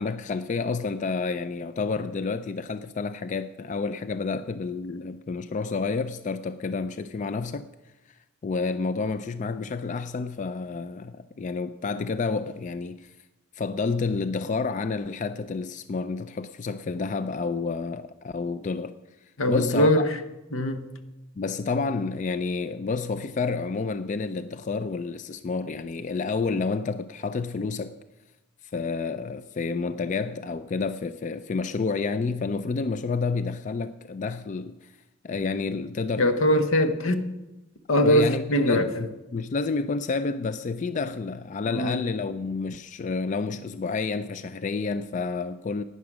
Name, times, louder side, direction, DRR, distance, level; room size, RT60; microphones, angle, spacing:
voice 1, 0.0-7.7 8.4-13.1 13.5-19.0 19.5-20.1 21.4-27.9 28.7-34.9 35.2-36.6 38.0-45.8, left 4 dB, 40° left, 0.3 m, -29 dB
voice 2, 19.4-20.2 20.5-20.9 36.2-37.4 37.9-39.0 41.7-42.0, left 1 dB, 80° left, 1.0 m, -22 dB
11.5 x 9.5 x 6.0 m
head